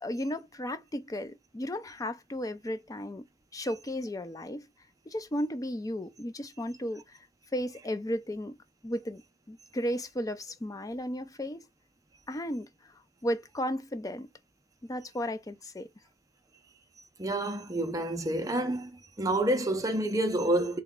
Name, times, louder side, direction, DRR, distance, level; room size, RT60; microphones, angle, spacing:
voice 1, 0.0-3.3 3.5-4.7 5.1-7.2 7.5-8.6 8.8-9.2 9.5-11.6 12.3-12.7 13.2-14.3 14.8-15.9, equal, 20° left, 0.5 m, -34 dB
voice 2, 17.2-18.9 19.2-20.8, right 1 dB, 20° right, 0.7 m, -28 dB
3.4 x 3.0 x 3.7 m
head